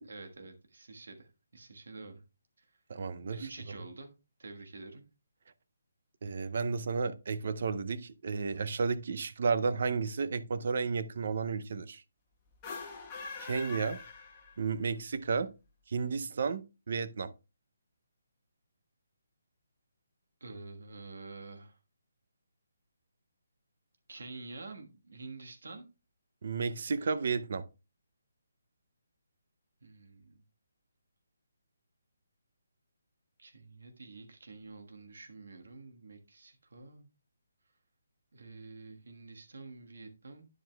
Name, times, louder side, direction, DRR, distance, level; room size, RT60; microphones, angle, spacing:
voice 1, 0.1-2.2 3.3-4.1 4.4-5.0 20.4-21.8 24.1-25.8 29.8-30.4 33.4-37.1 38.3-40.5, right 3 dB, 65° right, 1.4 m, -48 dB
voice 2, 2.9-3.5 6.2-12.0 13.4-14.0 14.6-15.5 15.9-17.3 26.4-27.7, right 5 dB, 40° right, 0.5 m, -32 dB
sound 1, 12.5-14.9, left 4 dB, 10° left, 1.1 m, -43 dB
10.0 x 7.6 x 2.3 m
hypercardioid pair, 180°, 0 cm